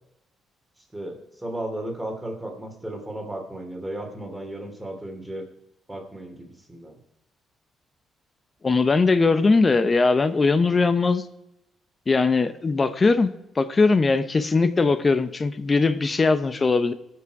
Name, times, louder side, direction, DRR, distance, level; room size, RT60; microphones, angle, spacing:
voice 1, 0.9-5.5 5.9-7.0, right 1 dB, 10° right, 2 dB, 2.8 m, -34 dB
voice 2, 8.6-11.2 12.1-16.9, left 3 dB, 30° left, 12 dB, 0.7 m, -20 dB
18.5 x 6.2 x 4.7 m, 0.86 s
cardioid pair, 90°, 0 cm